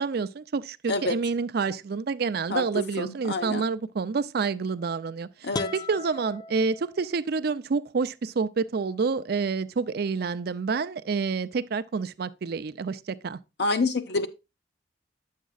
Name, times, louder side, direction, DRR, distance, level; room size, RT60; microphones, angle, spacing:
voice 1, 0.0-5.3 5.7-13.4, right 5 dB, 55° right, 0.4 m, -28 dB
voice 2, 2.5-3.7 5.4-5.7 13.6-14.3, left 3 dB, 60° left, 0.9 m, -27 dB
sound 1, 5.5-7.4, left 3 dB, 20° left, 0.3 m, -37 dB
10.0 x 7.3 x 2.4 m
head